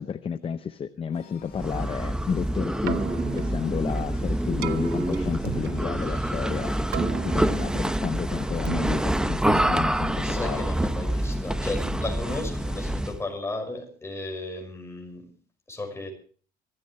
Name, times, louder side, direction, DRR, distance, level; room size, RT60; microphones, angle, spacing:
voice 1, 0.0-3.0 3.3-6.9 7.3-10.6, left 7 dB, 35° left, 12 dB, 0.6 m, -31 dB
sound 1, 1.1-13.4, left 7 dB, 55° left, 3.7 m, -52 dB
sound 2, 1.5-13.2, right 1 dB, 5° right, 0.7 m, -27 dB
Keyboard (musical), 2.7-10.9, right 12 dB, 75° right, 0.7 m, -37 dB
voice 2, 10.2-15.3 15.7-16.1, left 2 dB, 15° left, 3 dB, 5.7 m, -34 dB
24.0 x 13.0 x 3.3 m, 0.43 s
cardioid pair, 110°, 17 cm